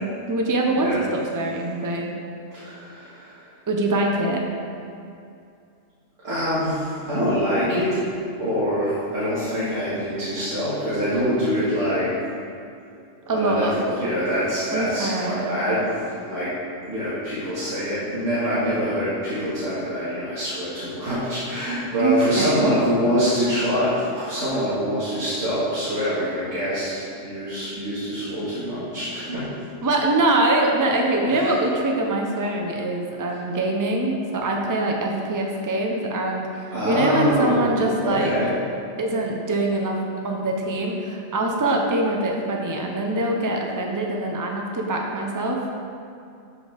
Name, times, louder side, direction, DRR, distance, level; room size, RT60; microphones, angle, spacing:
voice 1, 0.3-2.1 3.7-4.4 13.3-13.7 14.7-15.6 22.0-22.7 29.8-38.3 39.0-40.0 40.2-45.6, right 2 dB, 20° right, 1 dB, 0.6 m, -23 dB
voice 2, 2.6-3.4 6.2-8.0 8.4-12.1 13.3-16.5 16.8-29.5 31.3-31.6 36.7-38.5, equal, 70° right, -12 dB, 2.1 m, -25 dB
12.0 x 4.9 x 3.5 m, 2.5 s
omnidirectional pair, 1.3 m